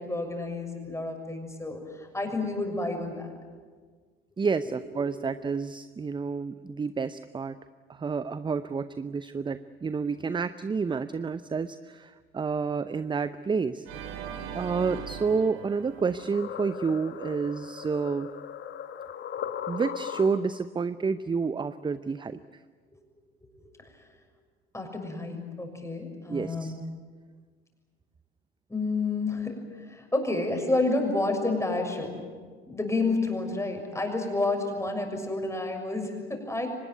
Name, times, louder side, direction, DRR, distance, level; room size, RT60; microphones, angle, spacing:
voice 1, 0.0-3.3 5.0-5.1 22.9-23.0 23.6-23.7 24.7-26.8 28.7-32.2 32.7-36.7, left 2 dB, 10° left, 3 dB, 6.7 m, -30 dB
voice 2, 4.4-7.6 7.9-13.9 14.5-18.3 19.7-22.4 26.3-26.7, right 5 dB, 15° right, 14 dB, 0.7 m, -29 dB
Organ, 13.8-17.0, right 6 dB, 60° right, 2.7 m, -40 dB
sound 1, 15.6-20.7, left 9 dB, 40° left, 1.6 m, -38 dB
24.5 x 20.0 x 9.6 m, 1.5 s
figure-of-eight pair, 60°, 29 cm